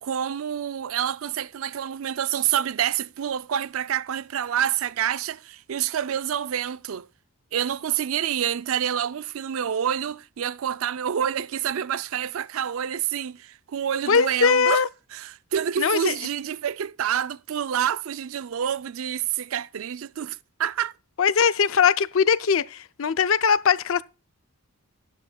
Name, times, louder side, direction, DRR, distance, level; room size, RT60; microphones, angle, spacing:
voice 1, 0.0-7.1 7.5-14.8 15.1-20.9, right 9 dB, 70° right, 0.4 m, -27 dB
voice 2, 14.1-14.9 15.8-16.1 21.2-24.0, left 6 dB, 65° left, 0.5 m, -20 dB
13.0 x 11.0 x 2.3 m
head